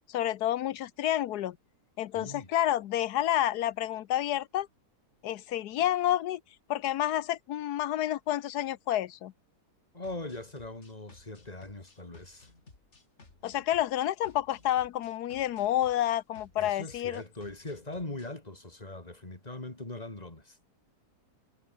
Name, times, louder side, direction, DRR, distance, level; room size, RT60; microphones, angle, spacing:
voice 1, 0.1-1.6 2.0-4.7 5.2-6.4 6.7-9.3 13.4-17.2, left 12 dB, 90° left, 1.3 m, -29 dB
voice 2, 2.1-2.5 9.9-12.5 16.6-20.6, left 2 dB, 25° left, 3.4 m, -41 dB
sound 1, 10.0-18.3, left 3 dB, 45° left, 3.4 m, -57 dB
omnidirectional pair, 1.7 m